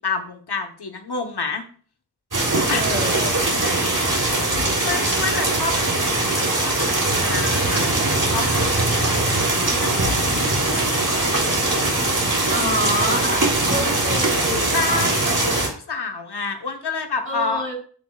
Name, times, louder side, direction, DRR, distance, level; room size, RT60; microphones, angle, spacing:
voice 1, 0.0-1.6 2.7-2.9 3.5-3.7 4.1-4.3 4.8-8.8 9.1-11.5 12.5-12.8 14.7-17.6, left 4 dB, 70° left, 5 dB, 1.2 m, -30 dB
sound 1, 2.3-15.7, right 2 dB, 50° right, 3.2 m, -21 dB
voice 2, 2.8-4.3 12.5-14.8 17.2-17.8, equal, 30° right, -2 dB, 4.3 m, -28 dB
13.5 x 5.2 x 2.3 m, 0.44 s
cardioid pair, 45°, 41 cm